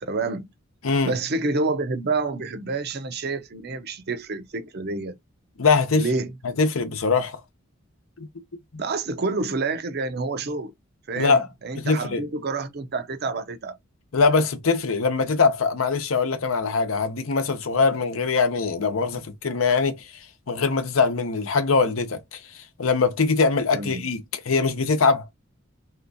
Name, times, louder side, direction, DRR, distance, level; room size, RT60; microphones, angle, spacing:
voice 1, 0.0-0.5 1.0-5.2 6.0-6.3 8.8-10.7 11.1-13.8 23.7-24.0, right 3 dB, 50° right, 0.6 m, -28 dB
voice 2, 5.6-6.0 6.4-7.4 8.2-8.3 8.7-8.8 11.2-11.5 11.8-12.2 14.1-20.1 20.5-25.2, left 4 dB, 85° left, 0.8 m, -22 dB
3.4 x 2.9 x 2.6 m
head